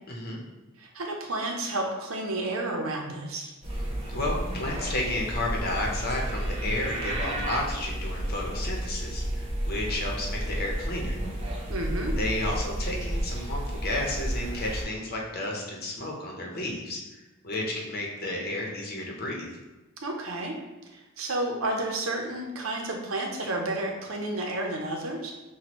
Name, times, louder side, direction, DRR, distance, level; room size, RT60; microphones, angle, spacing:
voice 1, 0.1-0.4 4.1-11.2 12.2-19.5, left 1 dB, 50° left, -1 dB, 0.8 m, -32 dB
voice 2, 0.8-3.5 11.7-12.1 20.0-20.5 20.9-25.3, right 2 dB, 85° right, 1 dB, 0.7 m, -31 dB
sound 1, 3.6-14.8, right 1 dB, 30° right, 0.7 m, -32 dB
6.0 x 2.3 x 3.0 m, 1.1 s
head